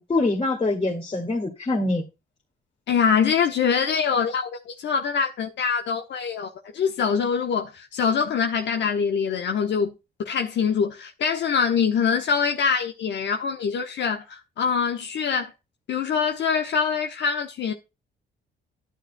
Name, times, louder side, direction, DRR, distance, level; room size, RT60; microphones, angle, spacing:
voice 1, 0.0-2.0, left 2 dB, 30° left, 2.1 m, -24 dB
voice 2, 2.9-9.9 10.2-15.5 15.9-17.7, left 6 dB, 65° left, 1.0 m, -24 dB
10.5 x 9.1 x 2.2 m
cardioid pair, 90°, 20 cm